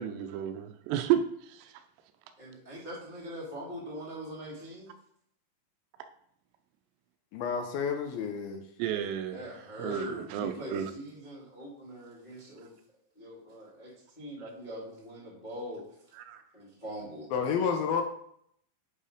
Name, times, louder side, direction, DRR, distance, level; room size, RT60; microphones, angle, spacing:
voice 1, 0.0-1.8 8.8-9.4 9.8-10.9 16.1-16.4, right 10 dB, 90° right, 8 dB, 2.8 m, -32 dB
voice 2, 2.4-4.9 9.3-12.7 13.1-15.8 16.5-17.3, equal, 20° left, -6 dB, 1.3 m, -42 dB
voice 3, 7.3-8.6 17.3-18.0, left 6 dB, 75° left, 5 dB, 2.4 m, -30 dB
7.4 x 5.5 x 5.0 m, 0.69 s
omnidirectional pair, 4.9 m